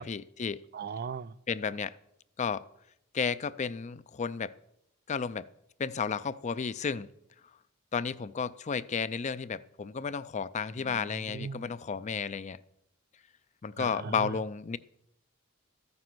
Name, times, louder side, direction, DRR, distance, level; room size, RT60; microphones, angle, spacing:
voice 1, 0.0-0.6 1.5-1.9 2.4-2.6 3.1-4.5 5.1-5.5 5.8-7.1 7.9-12.6 13.6-14.8, left 6 dB, 35° left, 0.4 m, -32 dB
voice 2, 0.7-1.3 10.8-11.6 13.8-14.3, right 6 dB, 45° right, 0.4 m, -39 dB
14.0 x 9.6 x 6.0 m
head